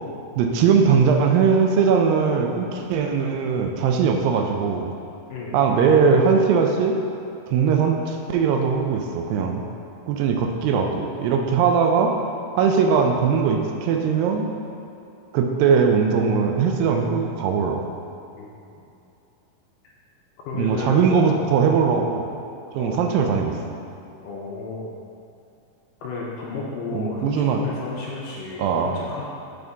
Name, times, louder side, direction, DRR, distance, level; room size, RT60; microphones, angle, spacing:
voice 1, 0.4-4.9 5.5-7.0 7.5-9.6 10.1-12.1 12.6-14.5 15.3-17.8 20.5-22.4 22.7-23.6 26.9-27.6 28.6-29.0, right 6 dB, 80° right, 3 dB, 2.1 m, -20 dB
voice 2, 18.4-18.8 20.5-21.5 22.8-23.0 24.2-24.9 26.0-29.2, left 4 dB, 80° left, -4 dB, 2.1 m, -33 dB
8.5 x 4.0 x 3.5 m, 2.7 s
omnidirectional pair, 4.3 m